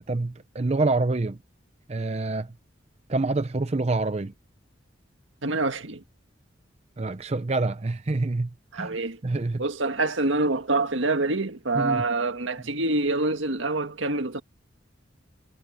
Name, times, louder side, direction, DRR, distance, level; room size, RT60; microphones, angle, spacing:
voice 1, 0.0-1.4 1.9-2.5 3.1-4.3 7.0-9.0 9.2-9.6 11.7-12.0, right 2 dB, 35° right, 0.6 m, -26 dB
voice 2, 5.4-6.0 8.7-9.2 9.6-14.4, right 2 dB, 80° right, 1.8 m, -26 dB
head